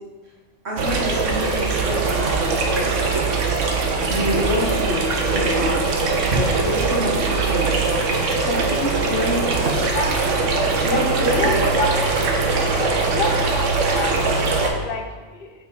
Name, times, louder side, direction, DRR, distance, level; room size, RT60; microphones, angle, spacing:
voice 1, 0.6-3.0 4.0-5.9 6.3-9.5 10.8-11.7, equal, 60° right, -3 dB, 1.7 m, -26 dB
sound 1, 0.8-14.7, right 3 dB, 80° right, 1.1 m, -21 dB
voice 2, 9.9-10.6 10.9-11.9 12.6-15.5, left 2 dB, 55° left, 4 dB, 0.8 m, -29 dB
7.8 x 3.7 x 4.1 m, 1.3 s
omnidirectional pair, 1.3 m